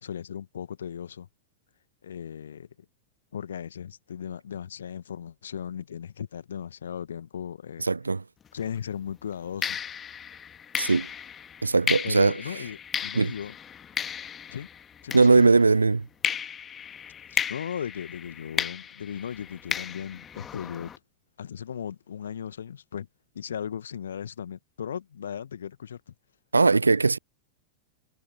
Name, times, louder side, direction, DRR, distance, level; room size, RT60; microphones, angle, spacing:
voice 1, 0.0-1.3 2.0-2.7 3.3-7.8 8.5-9.8 12.0-13.6 14.5-14.7 15.0-15.5 17.3-20.9 21.4-23.1 23.3-26.1, left 8 dB, 65° left, 1.5 m, -37 dB
voice 2, 7.9-8.2 10.8-11.1 11.6-12.4 13.1-13.3 15.1-16.1 26.5-27.2, right 4 dB, 80° right, 0.4 m, -20 dB
sound 1, 8.5-8.7 9.6-15.8 16.2-21.0, left 8 dB, 25° left, 1.6 m, -34 dB
figure-of-eight pair, 90°, 0 cm